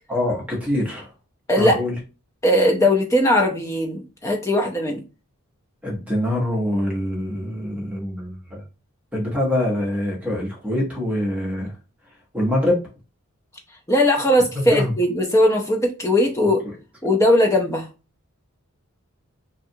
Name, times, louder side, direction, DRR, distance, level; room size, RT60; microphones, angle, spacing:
voice 1, 0.1-1.1 1.5-2.0 5.8-8.6 9.1-11.7 12.3-12.8 14.5-15.0 16.4-16.5, left 1 dB, 5° right, 0.8 m, -24 dB
voice 2, 1.5-1.8 2.4-5.0 13.9-16.6 17.0-17.9, left 1 dB, 15° left, 0.4 m, -19 dB
2.7 x 2.3 x 2.6 m
head